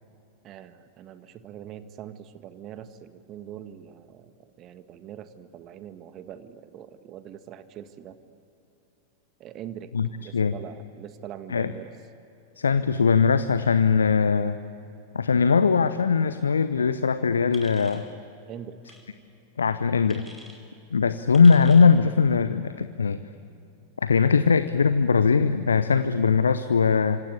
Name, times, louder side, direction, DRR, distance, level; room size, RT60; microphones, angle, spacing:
voice 1, 0.4-8.2 9.4-11.9 18.5-18.8, right 10 dB, 35° right, 10 dB, 1.6 m, -43 dB
voice 2, 12.6-14.6 15.1-18.1 19.6-20.2 20.9-23.2 24.0-27.2, left 5 dB, 70° left, 12 dB, 0.8 m, -20 dB
sound 1, 17.5-18.1 18.8-19.0 20.1-20.6 21.3-21.9, right 1 dB, 5° right, 5.1 m, -47 dB
26.0 x 26.0 x 8.7 m, 2.8 s
figure-of-eight pair, 90°, 0 cm